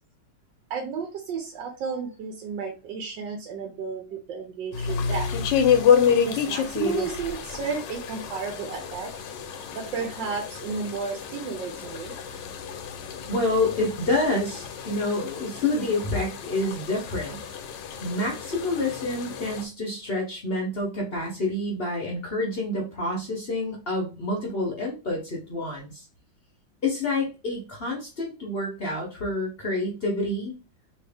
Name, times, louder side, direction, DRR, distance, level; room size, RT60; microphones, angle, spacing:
voice 1, 0.7-5.3 6.2-9.1 9.7-12.2, right 5 dB, 80° right, 1 dB, 1.4 m, -32 dB
sound 1, 4.7-19.6, left 7 dB, 80° left, 1.3 m, -28 dB
voice 2, 13.3-17.4 18.0-26.1 26.8-30.5, left 2 dB, 50° left, -1 dB, 0.7 m, -28 dB
3.1 x 2.8 x 3.4 m, 0.31 s
omnidirectional pair, 2.0 m